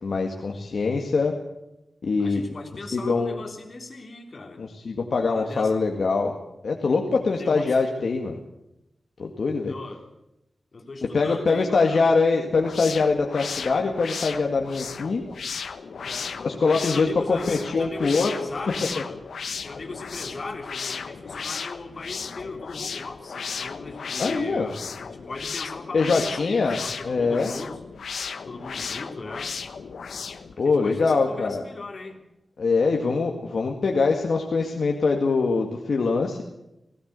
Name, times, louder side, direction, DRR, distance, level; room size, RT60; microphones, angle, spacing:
voice 1, 0.0-1.4 2.0-2.4 2.9-3.4 4.6-6.4 6.6-8.4 9.2-9.7 11.0-15.2 16.4-18.3 24.2-24.7 25.9-27.6 30.6-31.6 32.6-36.4, left 4 dB, 60° left, 2 dB, 1.9 m, -23 dB
voice 2, 2.2-4.6 5.3-5.7 7.3-7.8 9.6-10.1 10.7-12.1 16.0-16.4 16.7-19.2 19.6-27.8 28.5-29.6 30.5-32.2, left 3 dB, 45° left, 2 dB, 3.6 m, -38 dB
sound 1, 12.5-30.5, left 5 dB, 85° left, 1.3 m, -35 dB
19.0 x 17.0 x 8.2 m, 0.90 s
wide cardioid pair, 155°, 0 cm